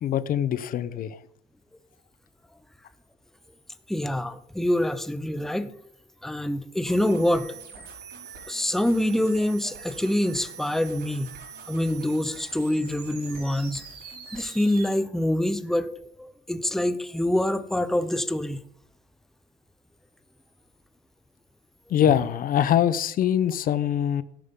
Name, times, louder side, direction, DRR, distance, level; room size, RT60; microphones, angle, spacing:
voice 1, 0.0-1.2 21.9-24.2, left 10 dB, 55° left, 15 dB, 0.8 m, -23 dB
voice 2, 3.9-5.7 6.2-7.5 8.5-11.3 11.7-13.8 14.3-15.9 16.2-18.6, left 1 dB, ahead, 11 dB, 0.7 m, -25 dB
sound 1, 6.9-14.9, right 6 dB, 75° right, 6.0 m, -43 dB
13.5 x 11.0 x 3.7 m, 0.70 s
cardioid pair, 110°, 17 cm